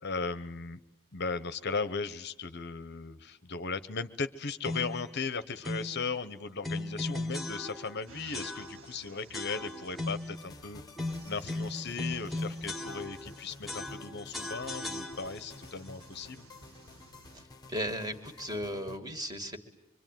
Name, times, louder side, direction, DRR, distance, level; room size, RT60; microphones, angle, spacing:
voice 1, 0.0-0.8 1.1-10.8 11.3-16.4, left 4 dB, 50° left, 12 dB, 0.9 m, -37 dB
sound 1, 4.6-5.1 5.6-6.0 6.6-8.0 8.3-9.0 9.3-10.4 11.0-13.4 13.7-15.5, left 2 dB, ahead, 1.4 m, -37 dB
sound 2, 8.1-17.5, right 4 dB, 70° right, 1.7 m, -55 dB
sound 3, 10.3-19.0, left 2 dB, 20° left, 1.2 m, -51 dB
voice 2, 17.7-19.6, equal, 15° right, 6 dB, 2.3 m, -36 dB
26.0 x 24.5 x 9.2 m, 0.83 s
head